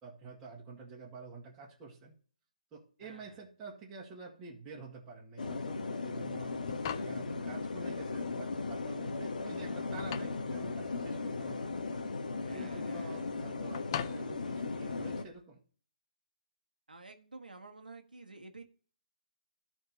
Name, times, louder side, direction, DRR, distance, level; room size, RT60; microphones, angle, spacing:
voice 1, 0.0-2.1 2.7-6.6 6.9-11.7 12.5-15.6, right 4 dB, 15° right, -5 dB, 2.0 m, -49 dB
voice 2, 3.0-3.4 12.4-13.2 16.9-18.6, right 3 dB, 90° right, 4 dB, 1.5 m, -51 dB
sound 1, 5.4-15.2, left 3 dB, 70° left, 1.2 m, -37 dB
sound 2, 6.7-15.4, left 10 dB, 35° left, 0.5 m, -45 dB
13.5 x 4.5 x 4.2 m, 0.42 s
figure-of-eight pair, 145°, 5 cm